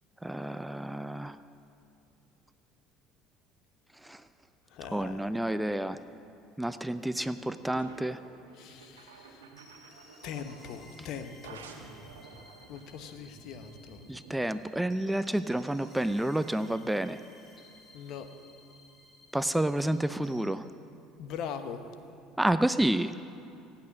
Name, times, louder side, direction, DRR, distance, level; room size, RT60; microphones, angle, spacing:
voice 1, 0.2-1.4 3.9-4.2 4.9-6.0 6.6-8.2 14.1-17.2 19.3-20.7 22.4-23.1, right 1 dB, 5° right, 13 dB, 0.5 m, -29 dB
voice 2, 4.7-5.3 8.6-9.5 10.2-11.7 12.7-14.0 17.9-18.3 21.2-21.8, left 7 dB, 55° left, 9 dB, 1.1 m, -41 dB
sound 1, 7.1-10.9 11.4-14.4, right 4 dB, 75° right, 1.4 m, -51 dB
sound 2, 8.7-20.5, left 1 dB, 25° left, 2.7 m, -57 dB
25.5 x 8.7 x 6.2 m, 2.7 s
figure-of-eight pair, 60°, 0 cm